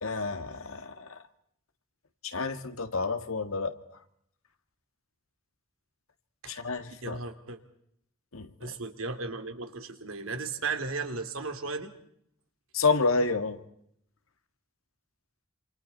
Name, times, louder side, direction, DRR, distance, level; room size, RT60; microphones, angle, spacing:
voice 1, 0.0-1.2 2.2-3.7 6.5-7.2 8.3-8.7 12.7-13.6, left 4 dB, 85° left, 1.9 m, -29 dB
voice 2, 7.0-7.6 8.6-11.9, right 4 dB, 80° right, 2.9 m, -35 dB
27.5 x 27.5 x 4.2 m
head